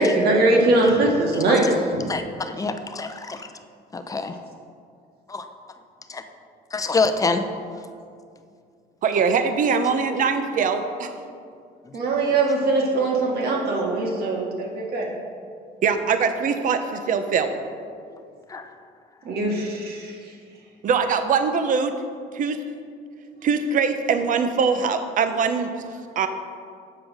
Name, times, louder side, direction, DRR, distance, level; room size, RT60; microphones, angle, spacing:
voice 1, 0.0-2.0 11.9-15.1 19.2-20.2, right 2 dB, 65° right, -1 dB, 1.7 m, -21 dB
voice 2, 2.1-3.5 3.9-4.4 5.3-5.5 6.1-6.2 6.7-7.4 18.5-18.7, left 4 dB, 20° left, 8 dB, 0.6 m, -26 dB
voice 3, 9.0-11.1 15.8-17.5 20.8-21.9 22.3-22.6 23.4-25.7 26.2-26.3, right 5 dB, 50° right, 8 dB, 0.7 m, -22 dB
7.6 x 5.0 x 6.3 m, 2.2 s
cardioid pair, 110°, 17 cm